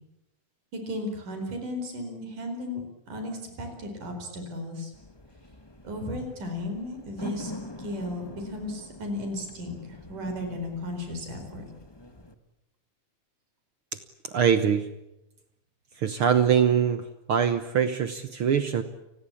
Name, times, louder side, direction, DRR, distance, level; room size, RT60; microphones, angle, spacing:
voice 1, 0.7-2.8 3.1-4.9 5.8-7.5 7.8-11.6, left 1 dB, 90° right, 5 dB, 6.2 m, -35 dB
sound 1, 4.9-12.3, left 2 dB, 30° left, 0.4 m, -44 dB
voice 2, 14.2-14.9 16.0-18.8, right 8 dB, 60° right, 11 dB, 1.5 m, -23 dB
29.0 x 20.0 x 8.6 m, 0.88 s
omnidirectional pair, 3.6 m